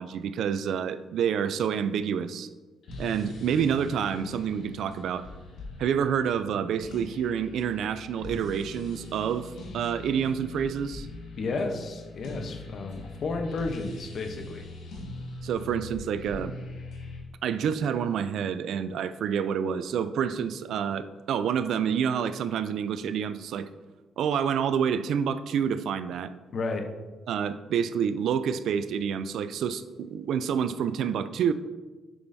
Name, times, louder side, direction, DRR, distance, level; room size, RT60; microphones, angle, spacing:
voice 1, 0.0-2.5 3.0-5.3 5.8-11.1 15.4-16.5 17.4-23.7 24.2-26.3 27.3-31.5, right 8 dB, 75° right, 13 dB, 0.3 m, -28 dB
sound 1, 2.8-17.2, left 3 dB, 75° left, 1.5 m, -42 dB
voice 2, 11.4-14.7 26.5-26.8, left 3 dB, 55° left, 6 dB, 0.8 m, -32 dB
6.5 x 6.2 x 2.6 m, 1.3 s
cardioid pair, 90°, 0 cm